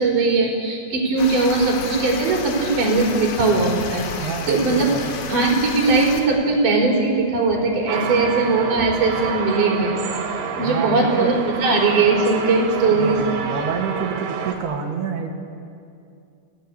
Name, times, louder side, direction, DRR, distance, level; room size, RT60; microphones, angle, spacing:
voice 1, 0.0-4.9 5.3-9.9 10.6-13.2, right 3 dB, 45° right, -1 dB, 5.7 m, -19 dB
sound 1, 1.2-6.2, left 5 dB, 85° left, 4.1 m, -32 dB
voice 2, 4.2-5.2 10.6-11.3 12.9-15.3, right 6 dB, 65° right, 3 dB, 3.8 m, -28 dB
sound 2, 7.9-14.6, right 6 dB, 80° right, 4.5 m, -28 dB
29.0 x 18.5 x 8.5 m, 2.4 s
omnidirectional pair, 5.2 m